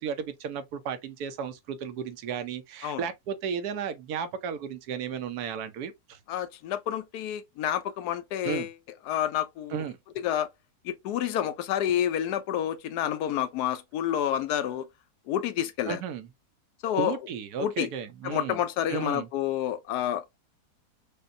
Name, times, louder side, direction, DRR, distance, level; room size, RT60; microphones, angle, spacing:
voice 1, 0.0-6.2 8.4-8.7 9.7-10.0 15.9-16.3 17.0-18.6 18.9-19.3, right 7 dB, 80° right, 1.2 m, -34 dB
voice 2, 6.3-8.7 9.1-9.8 10.2-10.5 10.8-14.9 15.3-16.0 16.8-17.2 17.6-17.9 18.2-20.2, left 11 dB, 85° left, 1.1 m, -29 dB
5.2 x 2.1 x 2.5 m
omnidirectional pair, 1.6 m